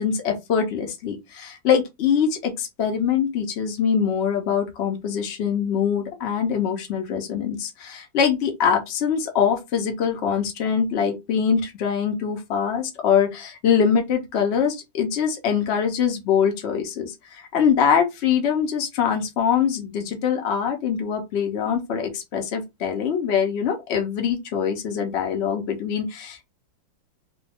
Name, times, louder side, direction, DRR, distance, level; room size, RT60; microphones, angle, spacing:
voice 1, 0.0-26.4, left 7 dB, 80° left, 0.6 m, -23 dB
3.0 x 2.3 x 3.4 m
omnidirectional pair, 2.1 m